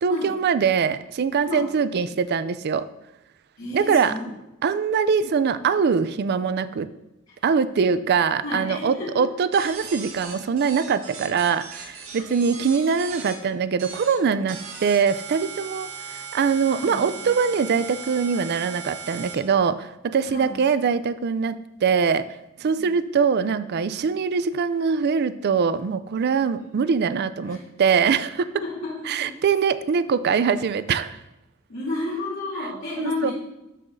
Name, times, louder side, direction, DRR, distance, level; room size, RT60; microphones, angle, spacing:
voice 1, 0.0-2.9 3.7-4.1 4.6-6.9 7.4-22.3 22.6-28.5 29.1-31.2 33.0-33.3, right 6 dB, 50° right, 14 dB, 0.4 m, -23 dB
voice 2, 3.6-4.3 7.3-7.4 8.4-9.3 16.7-17.2 20.2-20.6 22.7-22.9 26.6-26.7 27.4-27.6 28.6-28.7 29.0-29.3 31.7-33.3, left 2 dB, 65° left, -9 dB, 2.9 m, -31 dB
sound 1, 9.5-13.3 13.8-14.1 14.5-19.3, right 6 dB, 75° right, 1.7 m, -38 dB
13.0 x 5.7 x 2.6 m, 0.95 s
head